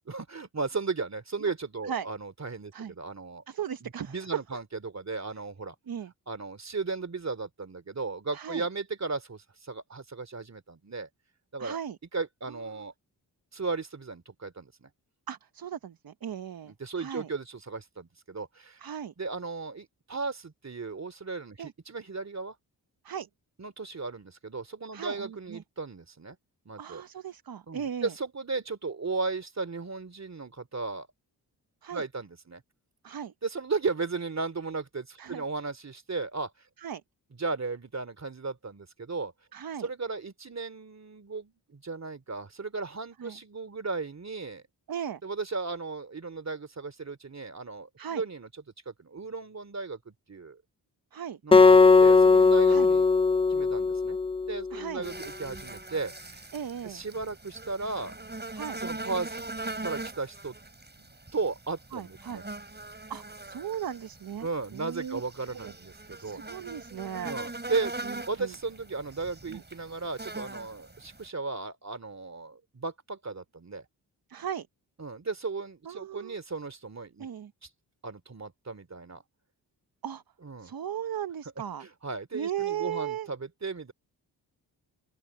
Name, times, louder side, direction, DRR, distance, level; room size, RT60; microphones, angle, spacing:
voice 1, 0.1-3.4 3.8-5.7 6.3-11.1 11.5-11.8 12.1-12.9 13.5-14.9 16.6-18.8 19.2-22.6 23.6-26.4 26.6-27.0 27.7-31.1 31.9-32.6 33.4-36.5 37.3-39.3 39.8-44.6 45.2-48.5 48.9-50.6 51.4-53.1 53.5-54.2 54.5-56.4 56.8-58.2 58.8-59.4 59.8-60.5 61.0-62.4 64.4-66.4 67.2-67.9 68.3-73.8 75.0-77.3 77.6-77.7 78.0-79.2 80.4-80.7 81.8-83.9, right 4 dB, 40° right, 2.8 m, -35 dB
voice 2, 3.5-4.2 5.9-6.1 8.3-8.6 11.6-12.0 12.5-12.6 15.3-17.3 18.8-19.1 21.6-21.7 23.0-23.3 24.9-25.6 26.8-28.1 31.8-32.0 33.0-33.3 35.2-35.4 36.8-37.0 39.5-39.9 43.2-43.4 44.9-45.2 48.0-48.2 51.1-51.4 52.7-52.9 54.7-55.1 56.5-57.0 58.5-58.8 61.9-62.4 63.1-64.5 64.7-65.2 65.6-65.7 66.2-67.3 68.1-68.2 68.4-68.5 69.5-69.6 74.3-74.7 75.8-76.4 77.2-77.5 80.0-80.2 80.6-81.9 82.3-83.3, right 9 dB, 55° right, 1.1 m, -37 dB
Acoustic guitar, 51.5-54.8, left 4 dB, 15° left, 0.5 m, -19 dB
sound 1, 55.0-71.3, right 2 dB, 25° right, 6.2 m, -41 dB
open air
cardioid pair, 50°, 42 cm